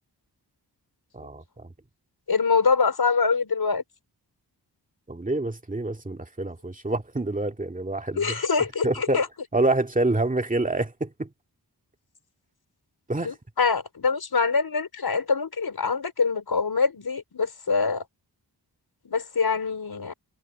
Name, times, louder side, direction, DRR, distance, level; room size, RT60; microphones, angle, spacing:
voice 1, 1.1-1.7 5.1-8.4 8.8-9.2 9.5-11.3 13.1-13.4, right 2 dB, 20° right, 2.2 m, -27 dB
voice 2, 2.3-3.8 8.1-9.3 13.2-18.1 19.0-20.1, left 5 dB, 65° left, 4.4 m, -24 dB
wide cardioid pair, 105°, 40 cm